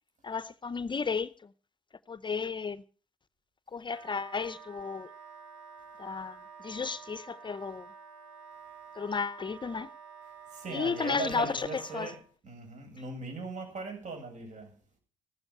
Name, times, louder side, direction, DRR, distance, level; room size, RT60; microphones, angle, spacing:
voice 1, 0.2-1.5 2.1-2.8 3.7-5.1 6.0-7.9 8.9-9.9 10.7-12.1, left 5 dB, 30° left, 0.6 m, -33 dB
Wind instrument woodwind instrument, 3.9-12.2, right 6 dB, 80° right, 1.8 m, -50 dB
voice 2, 10.5-12.2 12.4-14.7, right 3 dB, 50° right, 7.7 m, -39 dB
15.0 x 12.5 x 5.5 m
hypercardioid pair, 50°, 16 cm